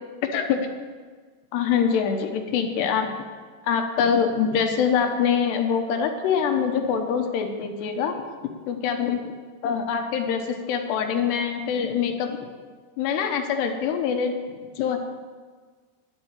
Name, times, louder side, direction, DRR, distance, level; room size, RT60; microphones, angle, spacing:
voice 1, 0.3-0.7 1.5-3.1 3.6-8.2 8.7-9.2 9.6-12.5 13.0-15.0, left 7 dB, 80° left, 5 dB, 3.1 m, -24 dB
11.0 x 7.8 x 8.8 m, 1.5 s
omnidirectional pair, 5.0 m